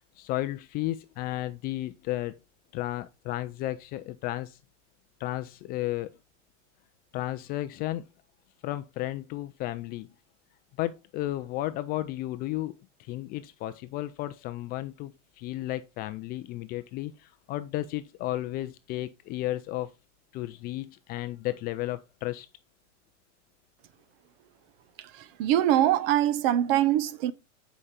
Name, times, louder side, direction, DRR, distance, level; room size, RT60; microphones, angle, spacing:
voice 1, 0.2-2.3 2.7-4.6 5.2-6.1 7.1-8.0 8.6-10.1 10.8-19.9 20.3-22.5, left 15 dB, 25° left, 0.3 m, -33 dB
voice 2, 25.0-27.3, right 12 dB, 50° right, 0.9 m, -24 dB
8.5 x 5.1 x 4.2 m
supercardioid pair, 135°, 37 cm